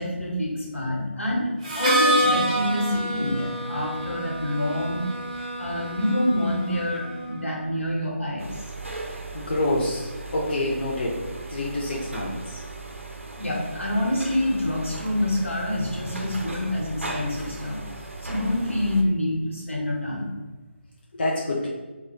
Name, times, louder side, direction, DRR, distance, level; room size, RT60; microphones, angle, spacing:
voice 1, 0.0-5.0 5.6-8.6 13.4-17.8 18.2-20.3, left 1 dB, 85° left, -3 dB, 0.8 m, -26 dB
Harmonica, 1.6-7.4, right 1 dB, 30° right, 0.6 m, -27 dB
sound 1, 8.4-19.0, right 3 dB, 90° right, 0.4 m, -37 dB
voice 2, 9.3-11.2 11.5-12.6 21.1-21.7, left 1 dB, 50° left, -4 dB, 0.5 m, -27 dB
2.2 x 2.0 x 3.0 m, 1.3 s
figure-of-eight pair, 155°, 7 cm